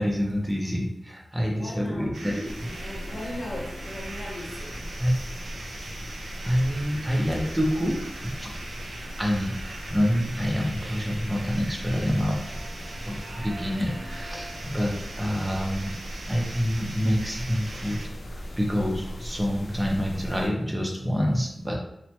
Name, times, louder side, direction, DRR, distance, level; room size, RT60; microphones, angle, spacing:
voice 1, 0.0-2.5 5.0-5.2 6.4-8.1 8.4-8.5 9.2-12.4 13.0-15.9 16.3-18.0 18.3-21.8, equal, 15° right, -1 dB, 0.5 m, -27 dB
voice 2, 1.5-2.4 2.7-4.9 5.8-5.9 9.1-9.7, left 1 dB, 50° left, -2 dB, 0.7 m, -39 dB
sound 1, 2.1-18.1, right 2 dB, 85° right, 0.4 m, -41 dB
sound 2, 2.4-20.5, equal, 90° left, 0.4 m, -38 dB
3.0 x 2.1 x 2.8 m, 0.77 s
wide cardioid pair, 105°, 0 cm